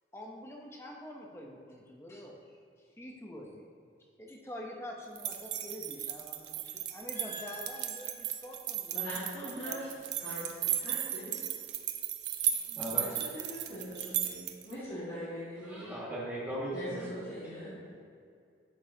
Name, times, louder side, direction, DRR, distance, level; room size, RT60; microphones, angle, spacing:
voice 1, 0.1-3.7 4.2-10.0, left 1 dB, 15° left, -1 dB, 0.7 m, -46 dB
sound 1, 5.2-14.7, right 11 dB, 75° right, 0.5 m, -35 dB
voice 2, 7.1-8.3 8.9-9.9 10.2-11.4 13.0-15.9 16.7-17.8, equal, 60° left, -12 dB, 1.8 m, -42 dB
voice 3, 12.5-13.1 15.6-17.4, right 1 dB, 10° right, -8 dB, 1.8 m, -39 dB
11.0 x 5.4 x 2.8 m, 2.4 s
head